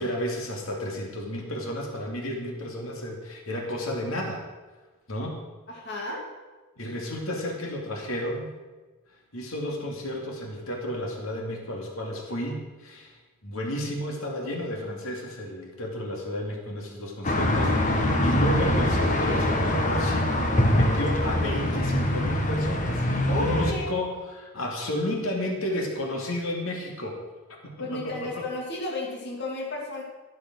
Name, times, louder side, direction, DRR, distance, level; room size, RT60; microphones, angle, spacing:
voice 1, 0.0-4.4 5.1-5.4 6.8-8.5 9.3-13.2 13.4-20.3 20.7-23.0 23.4-27.2 28.0-28.4, left 1 dB, 75° left, 1 dB, 2.7 m, -32 dB
voice 2, 5.7-6.2 23.3-24.0 27.8-30.0, left 2 dB, 55° left, -3 dB, 2.5 m, -32 dB
sound 1, 17.2-23.7, left 1 dB, 35° left, 1.7 m, -24 dB
13.0 x 11.5 x 6.3 m, 1.2 s
head